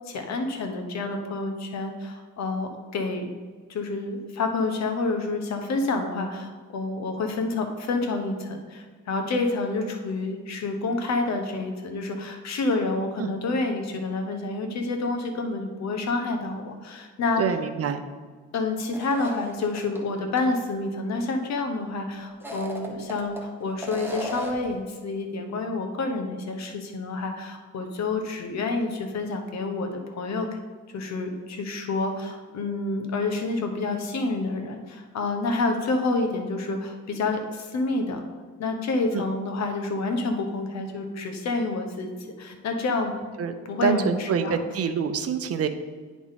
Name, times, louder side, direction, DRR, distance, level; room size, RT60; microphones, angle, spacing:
voice 1, 0.1-3.3 3.7-17.5 18.5-30.5 30.9-38.2 38.6-43.1 43.6-44.6, left 3 dB, 60° left, 5 dB, 1.1 m, -28 dB
voice 2, 17.4-18.0 39.1-39.3 43.4-43.5 43.8-45.7, right 7 dB, 50° right, 8 dB, 0.7 m, -26 dB
sound 1, 18.9-20.0 20.4-20.5 22.3-23.4 23.8-24.7, equal, 5° right, 1.0 m, -35 dB
10.0 x 3.6 x 4.1 m, 1.5 s
cardioid pair, 90°, 30 cm